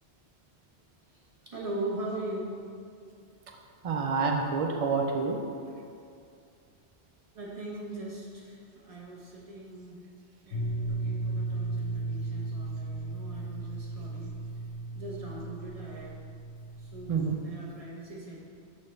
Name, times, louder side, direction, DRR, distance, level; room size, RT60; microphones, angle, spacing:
voice 1, 1.4-2.6 7.3-10.0 10.4-14.6 14.9-16.2 16.8-18.4, right 2 dB, 35° right, -4 dB, 1.1 m, -40 dB
voice 2, 3.8-5.4 5.7-5.8 17.1-17.4, right 4 dB, 65° right, 2 dB, 0.3 m, -28 dB
sound 1, 10.5-17.3, right 2 dB, 80° left, 1.1 m, -35 dB
7.0 x 5.9 x 3.2 m, 2.4 s
omnidirectional pair, 1.2 m